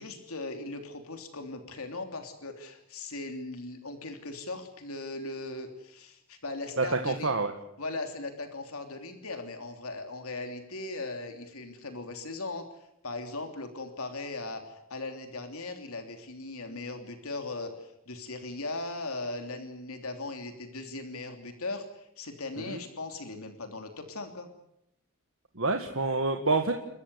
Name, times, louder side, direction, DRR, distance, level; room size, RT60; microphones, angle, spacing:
voice 1, 0.0-7.3 7.8-12.6 13.0-24.5, left 2 dB, 75° left, 5 dB, 3.1 m, -38 dB
voice 2, 6.8-7.5 22.6-22.8 25.6-26.7, right 3 dB, 65° right, 5 dB, 1.7 m, -27 dB
30.0 x 14.0 x 9.8 m, 0.79 s
head